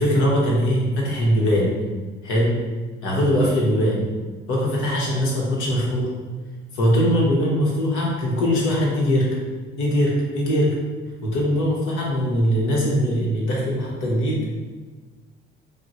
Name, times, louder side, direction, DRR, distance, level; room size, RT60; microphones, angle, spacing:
voice 1, 0.0-1.7 2.2-2.6 3.0-4.0 4.5-6.1 6.7-9.4 9.8-10.7 11.2-14.5, equal, 85° left, -4 dB, 1.2 m, -21 dB
5.1 x 2.2 x 3.1 m, 1.4 s
cardioid pair, 90°, 20 cm